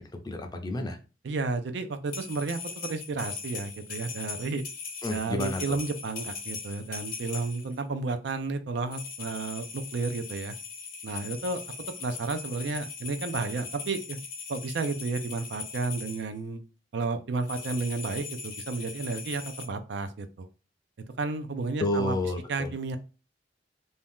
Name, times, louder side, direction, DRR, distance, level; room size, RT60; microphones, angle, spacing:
voice 1, 0.2-1.0 5.0-5.8 21.8-22.7, left 1 dB, 20° left, 4 dB, 0.5 m, -30 dB
voice 2, 1.2-4.6 5.1-10.5 11.0-11.6 12.0-14.2 14.5-16.6 16.9-20.5 21.2-22.2 22.5-23.0, right 3 dB, 70° right, 9 dB, 0.4 m, -32 dB
sound 1, 2.1-7.8 8.9-16.3 17.4-19.7, left 5 dB, 50° left, 0.8 m, -40 dB
2.7 x 2.3 x 3.4 m, 0.32 s
head